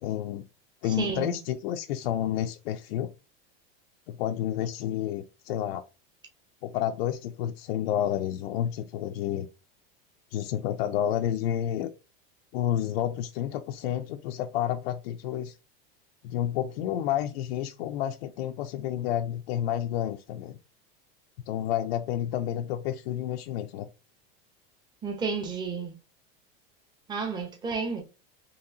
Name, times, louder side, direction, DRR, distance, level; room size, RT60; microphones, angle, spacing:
voice 1, 0.0-0.4 0.8-3.1 4.1-5.8 6.6-9.5 10.3-11.9 12.5-15.5 16.2-20.6 21.5-23.9, left 11 dB, 80° left, 0.5 m, -30 dB
voice 2, 1.0-1.4 25.0-25.9 27.1-28.0, right 5 dB, 15° right, 0.8 m, -31 dB
4.0 x 2.9 x 2.7 m
supercardioid pair, 155°, 30 cm